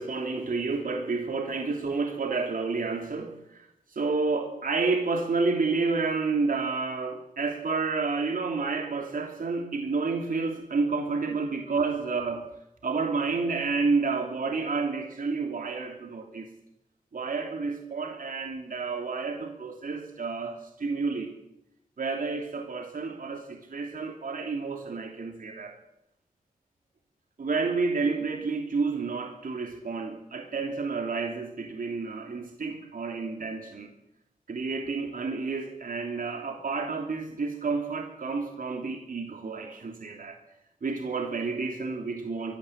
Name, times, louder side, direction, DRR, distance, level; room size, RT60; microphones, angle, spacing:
voice 1, 0.0-12.5 12.8-16.5 17.1-21.3 22.0-25.8 27.4-33.9 34.5-40.4 40.8-42.6, right 4 dB, 65° right, 3 dB, 3.0 m, -30 dB
23.0 x 13.0 x 8.8 m, 0.84 s
cardioid pair, 50°, 16 cm